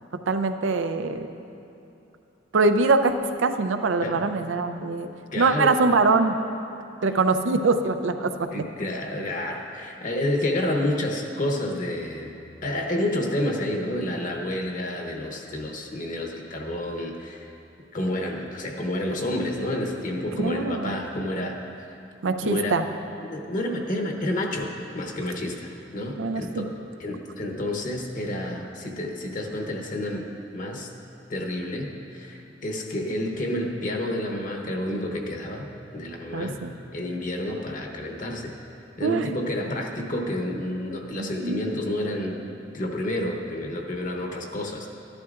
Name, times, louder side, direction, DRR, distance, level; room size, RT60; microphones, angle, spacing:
voice 1, 0.3-1.3 2.5-5.1 5.4-6.4 7.0-8.6 20.4-20.9 22.2-22.8 26.2-26.6 36.3-36.7 39.0-39.3 41.2-41.8, right 3 dB, 85° right, 8 dB, 0.5 m, -23 dB
voice 2, 5.3-5.8 8.5-17.5 17.9-21.6 21.9-22.0 22.4-22.8 23.2-26.7 27.0-30.9 31.3-36.6 36.9-38.5 39.0-42.4 42.7-44.9, left 1 dB, 45° left, 2 dB, 0.9 m, -29 dB
13.5 x 11.5 x 2.4 m, 2.7 s
head